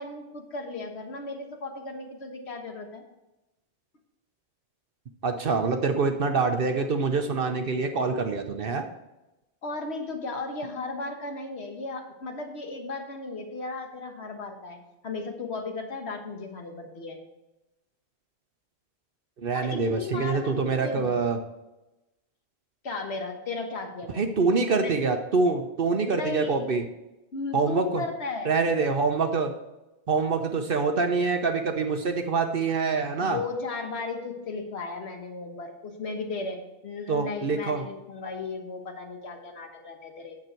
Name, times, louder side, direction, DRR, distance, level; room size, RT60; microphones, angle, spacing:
voice 1, 0.0-3.0 9.6-14.8 15.0-17.2 19.5-21.3 22.8-24.3 24.8-24.9 26.1-26.7 27.3-28.6 33.2-40.4, left 3 dB, 70° left, 4 dB, 1.6 m, -35 dB
voice 2, 5.2-8.9 19.4-21.4 24.2-26.9 27.5-28.0 28.5-29.5 30.1-33.4 37.1-37.9, right 4 dB, 55° right, 5 dB, 1.0 m, -25 dB
9.3 x 7.2 x 4.5 m, 0.99 s
omnidirectional pair, 1.1 m